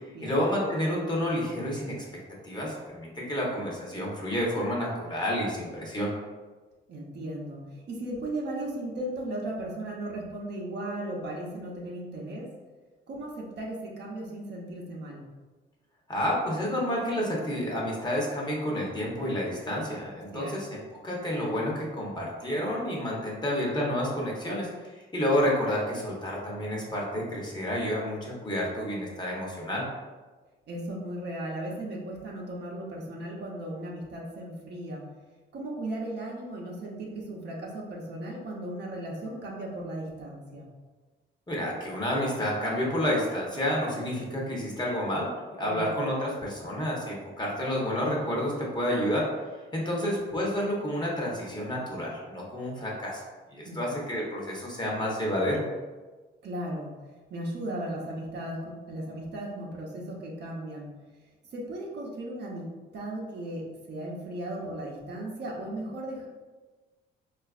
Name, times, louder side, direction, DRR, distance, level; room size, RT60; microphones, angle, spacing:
voice 1, 0.0-2.0 2.4-6.1 16.1-20.8 21.0-29.8 41.5-45.3 45.5-49.3 49.7-53.2 53.5-55.6, equal, 20° left, -3 dB, 0.9 m, -30 dB
voice 2, 6.9-12.5 13.1-15.3 20.3-20.6 30.7-35.1 35.5-40.7 45.6-45.9 49.9-50.1 53.6-53.9 56.4-56.9 57.3-60.9 61.5-62.7 62.9-66.3, right 1 dB, 60° right, -2 dB, 0.7 m, -36 dB
3.9 x 2.4 x 2.4 m, 1.3 s
cardioid pair, 90°, 20 cm